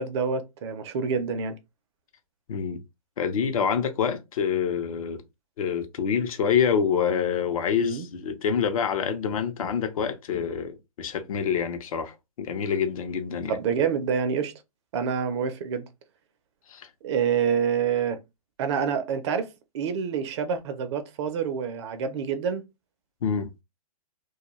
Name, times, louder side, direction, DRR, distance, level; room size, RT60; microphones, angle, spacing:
voice 1, 0.0-1.6 7.8-8.1 13.5-14.5 14.9-15.9 17.0-18.2 18.6-19.5 19.7-22.6, right 6 dB, 45° right, 0.5 m, -27 dB
voice 2, 2.5-2.8 3.2-5.2 5.6-13.5 16.7-16.9 23.2-23.5, left 7 dB, 60° left, 0.6 m, -26 dB
2.3 x 2.2 x 2.9 m
hypercardioid pair, 130°, 20 cm